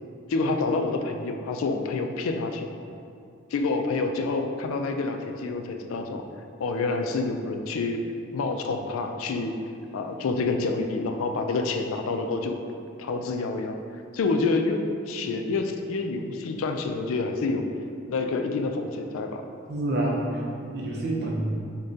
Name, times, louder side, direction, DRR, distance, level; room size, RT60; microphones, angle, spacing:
voice 1, 0.3-2.7 3.5-6.2 6.6-9.6 9.9-12.6 13.0-13.8 14.1-17.7 18.1-19.4, left 3 dB, 85° left, 5 dB, 0.3 m, -28 dB
voice 2, 19.7-21.5, right 1 dB, 50° right, -2 dB, 0.6 m, -28 dB
6.4 x 2.2 x 2.7 m, 2.4 s
head